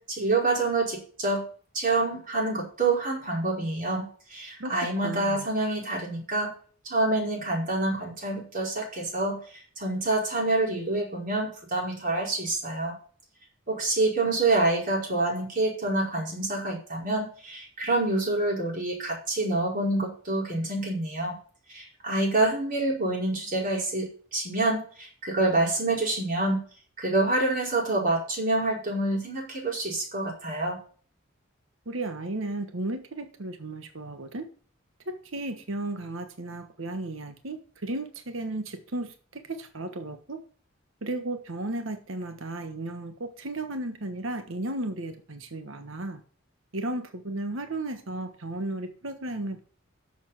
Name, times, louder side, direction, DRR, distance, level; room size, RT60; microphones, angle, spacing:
voice 1, 0.1-1.4 1.7-6.5 6.9-9.4 9.8-12.9 13.7-21.4 21.7-26.6 27.0-30.8, right 2 dB, 40° right, 5.0 m, -27 dB
voice 2, 5.0-5.4 31.9-34.5 35.1-39.1 39.5-40.4 41.0-46.2 46.7-49.6, right 2 dB, 75° right, 1.3 m, -34 dB
10.5 x 7.2 x 6.0 m
head